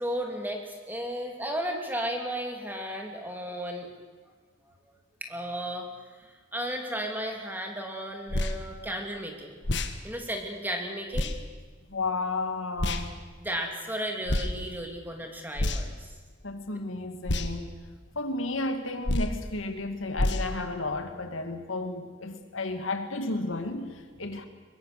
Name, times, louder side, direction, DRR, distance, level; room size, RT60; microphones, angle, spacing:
voice 1, 0.0-3.9 5.2-5.9 6.2-9.6 10.0-11.3 13.4-16.1, equal, 10° right, 2.7 m, -34 dB
sound 1, 8.3-8.6 9.6-9.9 11.1-11.3 12.8-13.0 14.3-14.5 15.5-16.0 17.3-17.5 19.0-19.4 20.2-20.5, left 1 dB, 60° left, 1.6 m, -27 dB
voice 2, 11.9-13.1 16.4-17.7 18.2-24.5, left 2 dB, 80° left, 2.2 m, -32 dB
22.5 x 22.0 x 6.7 m
head